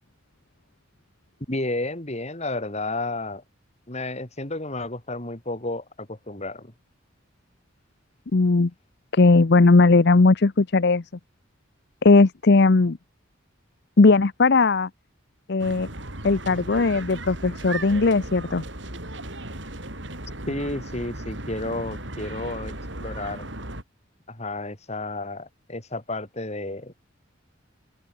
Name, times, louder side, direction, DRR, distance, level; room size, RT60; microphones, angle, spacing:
voice 1, 1.5-3.4 3.9-6.7 20.5-23.5 24.3-26.9, left 2 dB, 35° left, 3.7 m, -32 dB
voice 2, 8.3-8.7 9.1-11.0 12.0-13.0 14.0-14.9 15.5-15.9 16.2-18.6, left 3 dB, 55° left, 0.7 m, -18 dB
sound 1, 15.6-23.8, right 1 dB, 65° right, 7.2 m, -36 dB
open air
head